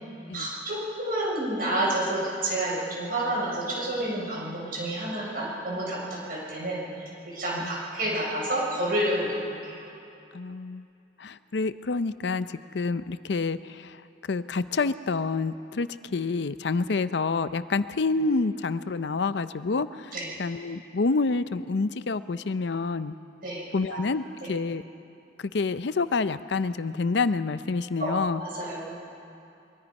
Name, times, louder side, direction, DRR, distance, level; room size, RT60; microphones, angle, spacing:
voice 1, 0.3-9.8 20.1-20.3 23.4-23.6 24.4-24.5 28.0-28.9, right 1 dB, 50° right, -4 dB, 6.4 m, -29 dB
voice 2, 10.3-10.9 11.2-14.0 14.3-23.1 23.7-24.8 25.4-28.4, left 4 dB, 70° left, 13 dB, 0.5 m, -28 dB
23.5 x 22.5 x 5.4 m, 2.6 s
head